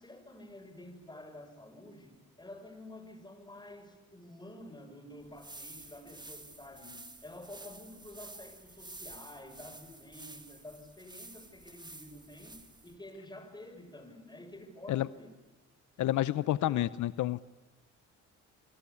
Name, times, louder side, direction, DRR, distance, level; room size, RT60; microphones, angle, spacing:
voice 1, 0.0-15.3 16.6-16.9, left 1 dB, 15° left, 9 dB, 6.7 m, -50 dB
sound 1, 5.2-13.0, right 2 dB, 15° right, 2.3 m, -50 dB
voice 2, 16.0-17.4, left 14 dB, 75° left, 17 dB, 0.8 m, -29 dB
26.5 x 24.5 x 8.5 m, 1.2 s
cardioid pair, 90°, 30 cm